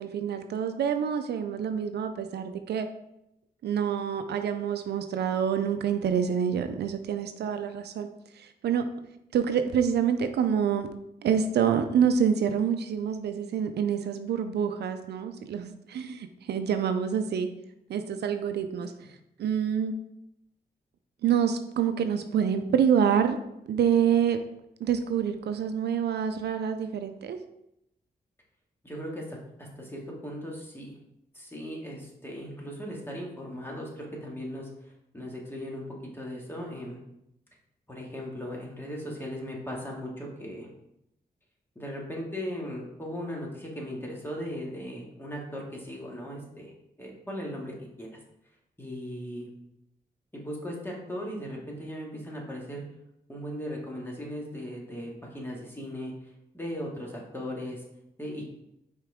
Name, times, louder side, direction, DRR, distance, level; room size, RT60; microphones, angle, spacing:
voice 1, 0.0-2.9 3.6-8.1 8.3-8.8 9.3-10.9 11.2-17.5 17.9-18.9 19.4-19.9 21.2-23.4 23.7-24.4 24.8-27.4, right 8 dB, 85° right, 8 dB, 0.5 m, -27 dB
voice 2, 28.8-30.9 31.3-35.8 36.1-37.0 37.9-40.7 41.8-46.7 47.0-48.1 48.8-49.5 50.3-52.8 53.3-56.1 56.5-57.8 58.2-58.4, equal, 15° left, -2 dB, 2.1 m, -38 dB
5.8 x 4.6 x 3.6 m, 0.82 s
cardioid pair, 60°, 17 cm